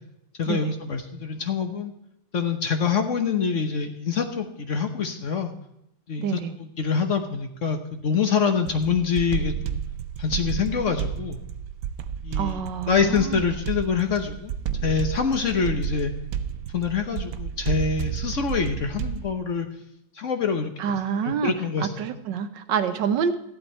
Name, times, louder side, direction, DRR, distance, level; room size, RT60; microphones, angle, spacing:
voice 1, 0.4-1.9 2.3-5.5 6.1-6.4 6.8-9.8 10.2-11.4 12.2-12.6 12.9-14.5 14.8-16.1 16.7-19.7 20.1-21.0 21.2-22.1, left 6 dB, 50° left, 6 dB, 1.1 m, -25 dB
voice 2, 6.2-6.5 12.4-13.4 20.8-21.5 21.8-23.3, right 7 dB, 80° right, 9 dB, 1.5 m, -27 dB
sound 1, 8.7-19.3, right 8 dB, 60° right, 1.0 m, -31 dB
14.0 x 11.0 x 4.4 m, 0.81 s
omnidirectional pair, 1.9 m